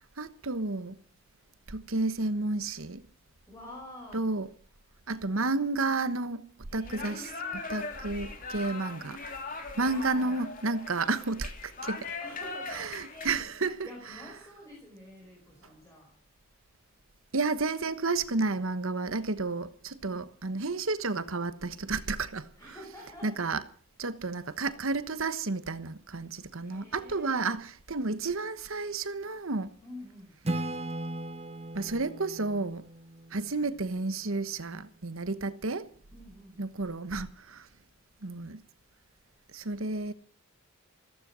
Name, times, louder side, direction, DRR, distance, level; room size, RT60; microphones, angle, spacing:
voice 1, 0.2-1.0 1.7-3.0 4.1-4.5 5.1-6.4 6.7-7.2 7.7-9.2 9.8-12.1 12.8-13.8 17.3-22.5 23.2-23.6 24.0-29.7 31.7-32.8 33.3-35.9 36.6-37.7 38.2-38.6 39.5-40.1, right 3 dB, 75° right, 1.2 m, -31 dB
voice 2, 3.5-4.3 6.7-7.9 9.8-10.5 12.2-16.2 20.0-20.3 22.6-23.4 26.6-27.5 29.8-30.4 36.1-36.6, left 1 dB, 15° left, 5.5 m, -48 dB
sound 1, 6.8-13.3, left 3 dB, 40° left, 3.2 m, -40 dB
Acoustic guitar / Strum, 30.4-34.0, right 1 dB, 30° right, 1.0 m, -37 dB
15.5 x 14.5 x 6.2 m
head